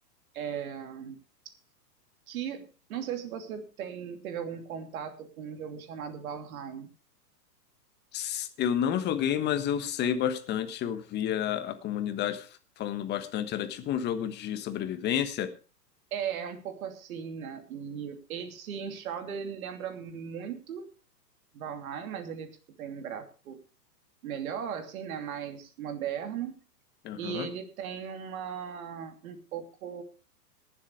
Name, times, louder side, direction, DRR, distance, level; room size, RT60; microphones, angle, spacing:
voice 1, 0.3-1.2 1.4-1.5 2.3-6.9 16.1-20.9 21.5-22.5 22.8-23.6 24.2-26.5 27.2-30.0, right 8 dB, 55° right, 7 dB, 2.9 m, -37 dB
voice 2, 8.1-12.5 12.8-15.5 27.0-27.5, left 9 dB, 20° left, 10 dB, 1.3 m, -30 dB
18.0 x 7.6 x 4.9 m, 0.35 s
hypercardioid pair, 135°, 50 cm